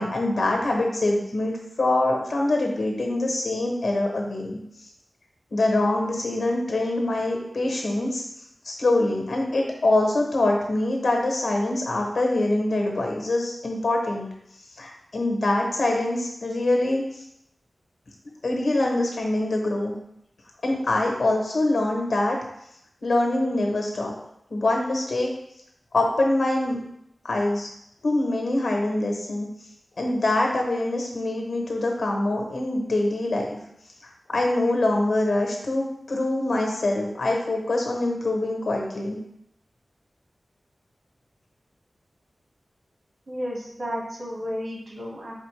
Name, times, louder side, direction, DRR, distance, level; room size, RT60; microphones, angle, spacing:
voice 1, 0.0-4.6 5.5-8.2 8.6-14.3 14.8-17.0 18.4-19.9 20.6-22.4 23.0-24.1 24.5-25.3 25.9-26.8 27.2-27.7 28.0-29.5 30.0-33.6 34.3-39.2, left 2 dB, 80° left, 1 dB, 0.9 m, -24 dB
voice 2, 43.3-45.3, equal, 70° right, -3 dB, 1.4 m, -32 dB
4.1 x 3.7 x 3.2 m, 0.78 s
wide cardioid pair, 90°, 0 cm